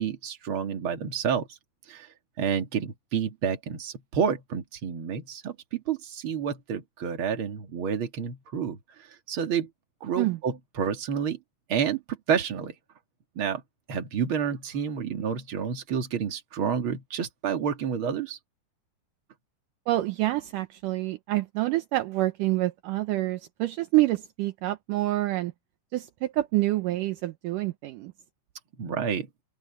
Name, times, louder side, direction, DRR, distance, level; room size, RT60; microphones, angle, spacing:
voice 1, 0.0-1.6 1.9-2.1 2.4-8.8 9.3-9.7 10.0-11.4 11.7-12.7 13.4-13.6 13.9-18.4 28.8-29.3, right 7 dB, 40° right, 2.5 m, -29 dB
voice 2, 19.9-25.5 25.9-28.1, right 17 dB, 75° right, 2.3 m, -27 dB
open air
omnidirectional pair, 4.1 m